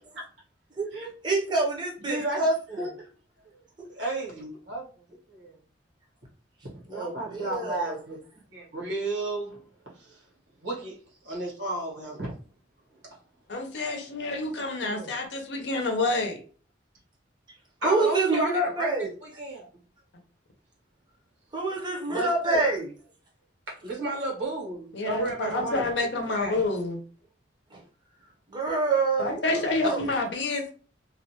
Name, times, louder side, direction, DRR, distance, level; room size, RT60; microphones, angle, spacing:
voice 1, 1.2-2.9 6.9-8.0 14.8-15.1 17.8-19.1 21.5-22.9 27.7-27.8 28.5-29.4 29.8-30.1, right 3 dB, 25° right, -1 dB, 0.6 m, -27 dB
voice 2, 2.1-2.4 2.8-3.1 3.9-4.8 5.3-5.5 6.6-8.2 8.5-9.6 10.6-10.9 11.2-12.3 17.8-18.9 19.2-19.7 22.1-22.6 23.8-25.8 26.3-26.6, right 2 dB, 80° right, -3 dB, 1.1 m, -32 dB
voice 3, 13.5-16.4 24.9-27.0 29.2-30.7, left 2 dB, 65° left, 3 dB, 0.6 m, -28 dB
2.4 x 2.2 x 2.8 m, 0.39 s
head